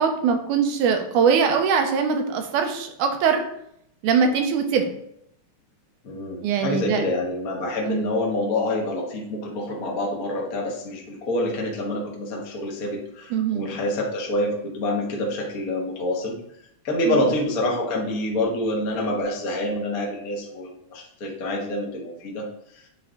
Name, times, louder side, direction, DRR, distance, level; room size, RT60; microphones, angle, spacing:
voice 1, 0.0-3.4 4.0-4.9 6.4-7.1 7.8-8.1 13.3-13.7 17.1-17.3, right 6 dB, 80° right, 5 dB, 2.3 m, -22 dB
voice 2, 6.0-16.4 16.8-22.5 22.7-22.8, left 1 dB, 45° left, -2 dB, 1.1 m, -27 dB
9.4 x 3.8 x 3.7 m, 0.73 s
omnidirectional pair, 3.6 m